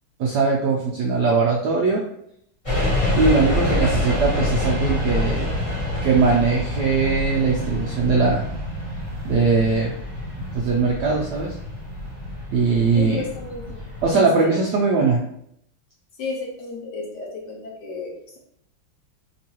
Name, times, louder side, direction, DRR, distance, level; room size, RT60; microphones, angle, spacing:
voice 1, 0.2-2.0 3.2-5.6 6.0-8.4 9.2-10.0 10.5-11.6 12.5-13.2 14.0-15.2, right 4 dB, 75° right, -2 dB, 0.9 m, -20 dB
sound 1, 2.6-14.1, left 1 dB, 25° left, 0.8 m, -26 dB
voice 2, 12.9-13.8 14.1-14.7 16.2-18.4, left 3 dB, 65° left, -1 dB, 1.2 m, -33 dB
3.9 x 3.0 x 2.9 m, 0.72 s
omnidirectional pair, 2.3 m